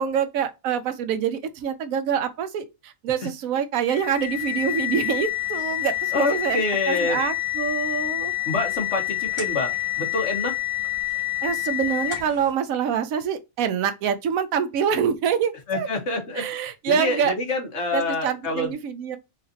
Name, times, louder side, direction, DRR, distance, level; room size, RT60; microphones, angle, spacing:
voice 1, 0.0-8.3 11.4-15.9 16.4-17.3 17.9-19.2, right 7 dB, 75° right, 1.0 m, -26 dB
sound 1, 3.9-12.4, left 16 dB, 30° left, 2.2 m, -27 dB
voice 2, 6.1-7.2 8.4-9.7 10.0-10.5 15.7-16.6 16.9-18.7, left 2 dB, 55° left, 1.5 m, -26 dB
3.9 x 2.5 x 2.6 m
omnidirectional pair, 1.5 m